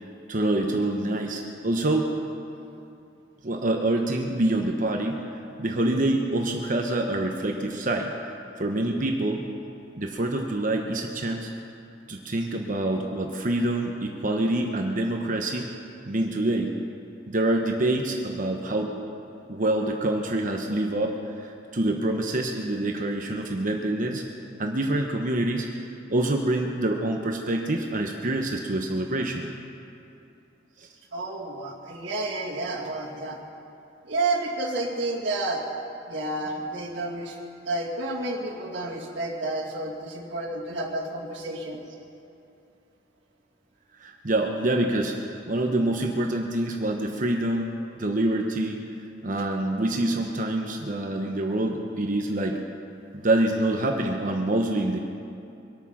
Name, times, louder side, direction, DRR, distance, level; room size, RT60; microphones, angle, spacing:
voice 1, 0.3-2.2 3.4-5.3 5.6-8.1 8.6-9.5 10.0-11.5 12.1-15.7 16.1-16.7 17.3-18.9 19.5-24.2 24.6-25.7 26.1-29.5 30.8-30.9 44.0-48.9 49.2-52.6 53.1-55.0, right 1 dB, 45° right, 2 dB, 1.0 m, -26 dB
voice 2, 31.1-33.4 34.0-35.6 36.1-37.3 37.6-41.8, right 2 dB, 65° right, -5 dB, 2.4 m, -30 dB
23.5 x 9.0 x 5.9 m, 2.6 s
head